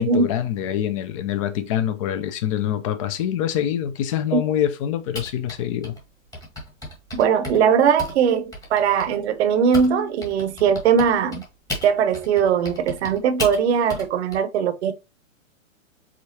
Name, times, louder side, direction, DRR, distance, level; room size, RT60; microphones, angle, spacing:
voice 1, 0.0-6.0, left 10 dB, 25° left, 0.5 m, -25 dB
Typing, 5.1-9.9 10.2-14.4, left 1 dB, 10° left, 1.2 m, -34 dB
voice 2, 7.2-11.4 11.8-14.9, right 7 dB, 55° right, 0.8 m, -20 dB
5.0 x 3.5 x 2.8 m
hypercardioid pair, 135°, 41 cm